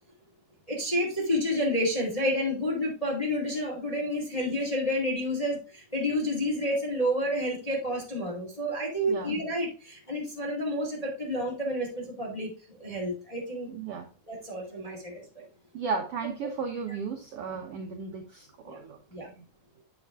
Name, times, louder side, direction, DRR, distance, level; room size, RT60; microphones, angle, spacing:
voice 1, 0.7-13.7 14.3-15.4 17.5-17.6 18.6-18.8 19.1-19.3, equal, 15° left, -3 dB, 1.4 m, -30 dB
voice 2, 13.7-14.1 15.7-19.4, right 5 dB, 70° right, 3 dB, 1.5 m, -35 dB
8.1 x 4.9 x 3.5 m, 0.35 s
omnidirectional pair, 3.7 m